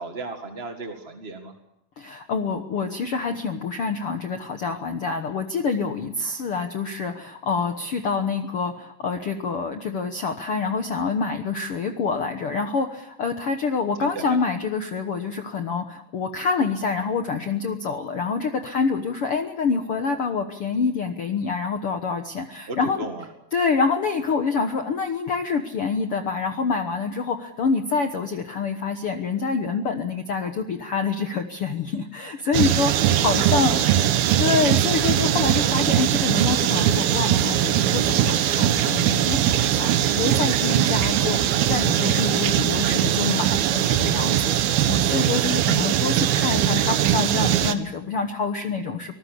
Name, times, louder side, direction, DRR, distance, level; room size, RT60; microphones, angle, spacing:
voice 1, 0.0-1.5 14.0-14.4 22.7-23.2 33.4-34.5, right 3 dB, 30° right, 4 dB, 1.2 m, -35 dB
voice 2, 2.0-23.1 23.5-33.7 34.4-49.2, left 5 dB, 65° left, 6 dB, 1.4 m, -26 dB
sound 1, 32.5-47.7, right 11 dB, 80° right, 3.0 m, -21 dB
24.5 x 19.5 x 8.3 m, 0.81 s
omnidirectional pair, 4.3 m